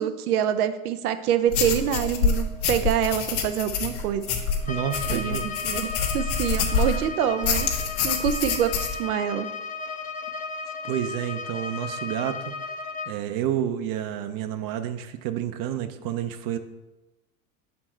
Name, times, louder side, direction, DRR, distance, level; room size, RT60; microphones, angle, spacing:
voice 1, 0.0-4.2 5.1-5.9 6.1-7.7 8.0-8.7 9.0-9.5, right 9 dB, 90° right, 10 dB, 0.6 m, -25 dB
sound 1, 1.5-7.0 7.4-9.0, left 5 dB, 75° left, 1.1 m, -26 dB
sound 2, 1.9-11.9, right 4 dB, 10° right, 0.7 m, -49 dB
Bowed string instrument, 4.6-13.2, left 4 dB, 20° left, 0.4 m, -35 dB
voice 2, 4.7-5.5 10.8-12.5 13.1-16.6, right 10 dB, 50° right, 9 dB, 0.6 m, -29 dB
6.1 x 4.3 x 4.3 m, 1.0 s
hypercardioid pair, 95°, 43 cm